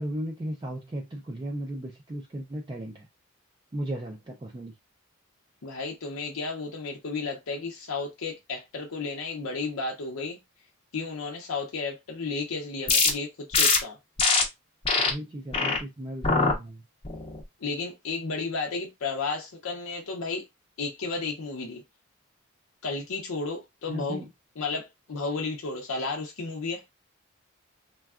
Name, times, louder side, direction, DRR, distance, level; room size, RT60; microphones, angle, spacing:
voice 1, 0.0-3.1 3.7-4.7 15.0-16.8 23.9-24.3, right 1 dB, 20° right, 0.3 m, -36 dB
voice 2, 5.6-10.4 10.9-14.0 17.6-20.4 20.8-21.8 22.8-24.2 24.6-26.8, left 4 dB, 85° left, 0.6 m, -33 dB
sound 1, 12.9-13.1 13.5-13.8 14.2-14.4 14.8-15.1 15.5-15.8 16.2-16.5 17.0-17.4, left 4 dB, 25° left, 0.6 m, -22 dB
3.4 x 2.2 x 2.3 m
head